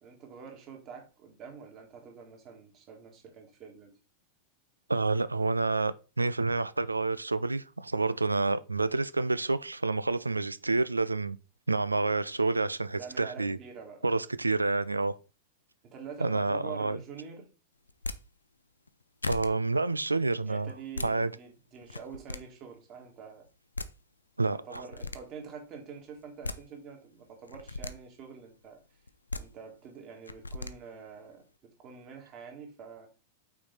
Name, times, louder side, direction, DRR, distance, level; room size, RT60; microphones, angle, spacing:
voice 1, 0.0-4.0 13.0-14.3 15.8-17.5 20.4-23.5 24.5-28.8 29.3-33.1, right 6 dB, 35° right, 2.0 m, -46 dB
voice 2, 4.9-11.4 11.7-13.6 14.0-15.1 16.2-17.0 19.3-20.7 21.0-21.3 24.4-24.8, right 3 dB, 80° right, 0.3 m, -28 dB
sound 1, 17.9-18.2 18.9-19.0 19.2-19.5 20.7-21.1 21.8-22.4 23.5-23.6 23.7-23.9 24.7-25.2 26.2-26.6 27.5-27.9 29.1-29.4 30.3-30.7, left 2 dB, 80° left, 0.4 m, -36 dB
5.9 x 4.5 x 4.0 m
figure-of-eight pair, 90°, 0 cm